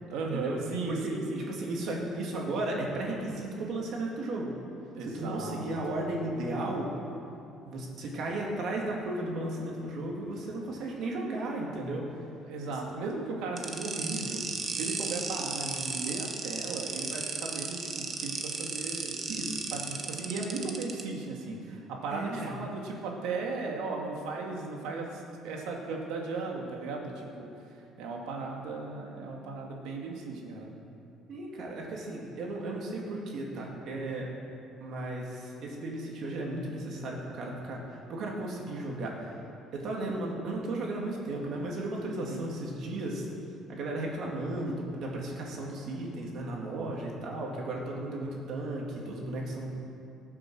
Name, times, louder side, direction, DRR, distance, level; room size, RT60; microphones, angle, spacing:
voice 1, 0.1-1.4 4.9-5.7 12.5-14.4 14.7-19.1 19.7-27.5 28.0-30.7 42.1-42.4 47.7-48.0, right 3 dB, 85° right, 0 dB, 2.3 m, -36 dB
voice 2, 0.9-4.5 5.0-6.9 7.6-12.1 12.7-12.8 19.3-19.6 22.1-22.5 31.3-34.3 34.8-39.3 39.7-43.3 43.7-49.7, right 2 dB, 50° right, -1 dB, 2.7 m, -35 dB
sound 1, 13.6-21.0, right 4 dB, 30° right, 1.1 m, -35 dB
19.5 x 7.5 x 6.3 m, 2.7 s
cardioid pair, 160°, 0 cm